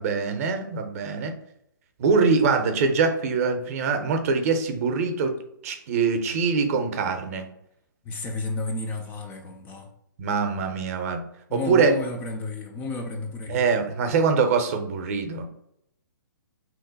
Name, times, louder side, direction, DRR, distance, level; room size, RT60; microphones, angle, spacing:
voice 1, 0.0-1.3 2.0-5.4 5.6-7.5 10.2-11.2 11.5-11.9 13.5-15.5, right 5 dB, 45° right, 0.5 m, -23 dB
voice 2, 8.1-9.9 11.5-13.7, left 3 dB, 15° left, 0.3 m, -32 dB
2.9 x 2.1 x 3.9 m
hypercardioid pair, 135°, 11 cm